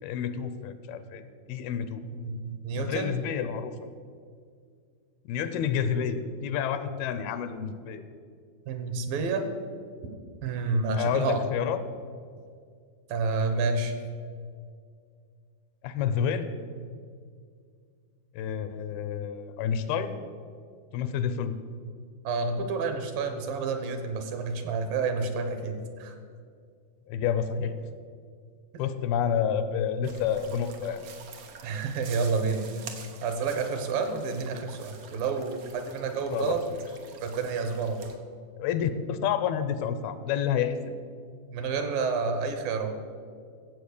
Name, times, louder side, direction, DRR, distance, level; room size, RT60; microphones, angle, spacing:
voice 1, 0.0-2.0 2.7-3.9 5.3-8.0 10.9-11.8 15.8-16.5 18.3-20.2 20.9-21.6 27.1-27.7 28.8-31.1 36.3-36.5 38.6-41.0, left 8 dB, 80° left, 11 dB, 2.5 m, -29 dB
voice 2, 2.0-3.2 8.7-9.5 10.4-11.4 13.1-13.9 22.2-26.1 31.6-32.6 33.2-36.6 37.2-38.1 41.5-43.0, right 4 dB, 70° right, 7 dB, 2.7 m, -29 dB
sound 1, 30.0-38.2, right 6 dB, 90° right, 1.3 m, -48 dB
15.0 x 7.7 x 6.6 m, 2.1 s
omnidirectional pair, 4.4 m